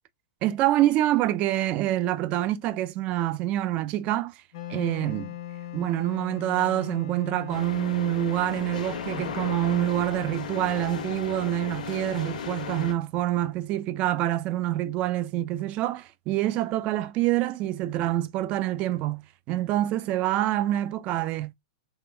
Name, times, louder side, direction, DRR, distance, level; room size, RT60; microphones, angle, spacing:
voice 1, 0.4-4.3 4.7-5.3 5.7-21.5, right 14 dB, 30° right, 0.3 m, -26 dB
Wind instrument woodwind instrument, 4.5-11.5, left 11 dB, 55° left, 0.6 m, -41 dB
sound 1, 7.5-12.9, left 7 dB, 85° left, 0.9 m, -35 dB
3.5 x 2.4 x 3.3 m
supercardioid pair, 150°, 4 cm